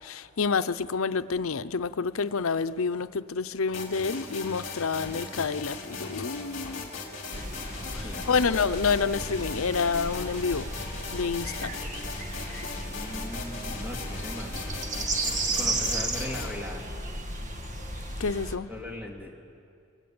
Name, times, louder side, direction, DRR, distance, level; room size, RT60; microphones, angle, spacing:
voice 1, 0.0-6.9 7.9-10.7 11.1-11.7 18.2-18.7, left 5 dB, 85° left, 12 dB, 0.7 m, -28 dB
sound 1, 3.7-16.5, left 4 dB, 35° left, 4.2 m, -38 dB
sound 2, 7.3-18.6, right 2 dB, 35° right, 1.7 m, -34 dB
voice 2, 8.0-8.5 12.9-14.7 15.5-16.9 18.7-19.3, left 1 dB, 10° right, 0 dB, 2.8 m, -39 dB
25.0 x 21.5 x 8.8 m, 2.4 s
head